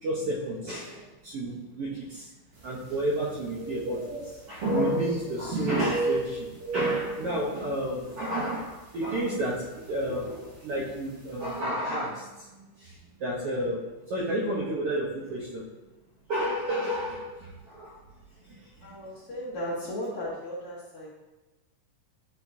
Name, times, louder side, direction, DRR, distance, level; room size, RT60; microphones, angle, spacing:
voice 1, 0.0-2.3 2.6-6.5 6.7-15.6 16.3-18.0 18.5-18.7, right 1 dB, 65° right, -6 dB, 1.5 m, -31 dB
sound 1, 2.6-2.7 3.0-4.3 4.6-5.5 5.7-7.9 8.3-8.5 9.1-9.4 10.5-10.6 10.9-11.0, right 1 dB, 50° right, 2.4 m, -32 dB
voice 2, 18.8-21.1, equal, 60° left, -6 dB, 1.6 m, -35 dB
10.0 x 4.4 x 2.7 m, 1.1 s
omnidirectional pair, 3.7 m